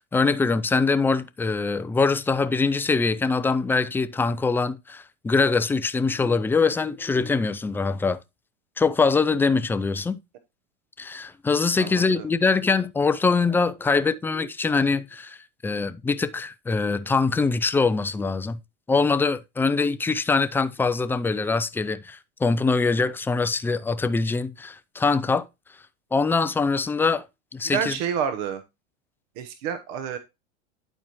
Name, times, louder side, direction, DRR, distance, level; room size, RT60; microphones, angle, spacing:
voice 1, 0.0-8.2 8.8-10.2 11.0-15.4 15.6-18.6 18.9-25.5 26.1-27.2 27.5-27.9, left 4 dB, 5° left, 0.3 m, -23 dB
voice 2, 11.8-12.3 27.7-28.6 29.4-30.2, right 8 dB, 60° right, 1.1 m, -29 dB
11.0 x 4.5 x 3.0 m
hypercardioid pair, 100°, 36 cm